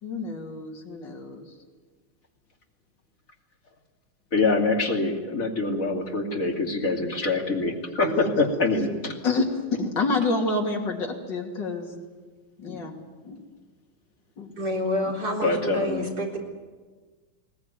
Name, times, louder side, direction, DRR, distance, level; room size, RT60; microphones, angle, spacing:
voice 1, 0.0-1.5 8.0-8.1 9.2-12.0 12.6-12.9 13.2-13.4 14.4-14.5, left 3 dB, 60° left, 1 dB, 3.4 m, -28 dB
voice 2, 4.3-9.1 15.4-16.0, left 3 dB, 40° left, 1 dB, 3.1 m, -25 dB
voice 3, 14.6-16.4, equal, 50° right, 0 dB, 4.3 m, -28 dB
21.0 x 18.5 x 9.2 m, 1.4 s
omnidirectional pair, 2.2 m